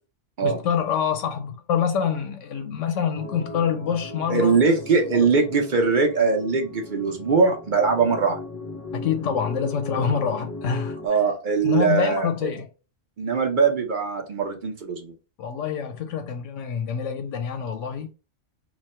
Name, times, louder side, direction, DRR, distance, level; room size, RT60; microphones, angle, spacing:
voice 1, 0.4-4.6 5.1-5.4 8.9-11.0 11.6-12.7 15.4-18.1, left 7 dB, 90° left, 0.9 m, -26 dB
sound 1, 3.1-11.1, left 2 dB, 25° left, 0.4 m, -37 dB
voice 2, 4.3-8.4 11.0-12.5 13.2-15.1, right 5 dB, 50° right, 0.7 m, -21 dB
3.1 x 2.2 x 4.1 m
omnidirectional pair, 1.2 m